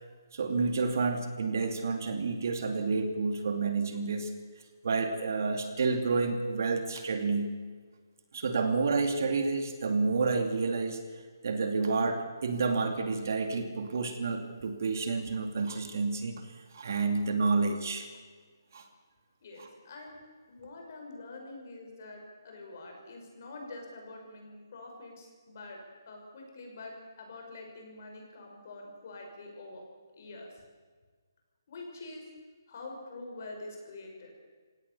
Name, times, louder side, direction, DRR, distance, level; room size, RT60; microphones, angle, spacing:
voice 1, 0.3-4.3 4.8-7.5 8.3-11.0 11.4-16.4 16.7-18.1 18.7-18.8 19.6-19.7, right 4 dB, 50° right, 5 dB, 2.6 m, -29 dB
voice 2, 19.4-20.2 20.5-29.8 30.1-30.6 31.7-32.3 32.7-34.3, left 2 dB, 40° left, 2 dB, 6.0 m, -46 dB
28.0 x 17.5 x 7.0 m, 1.5 s
hypercardioid pair, 170°, 2 cm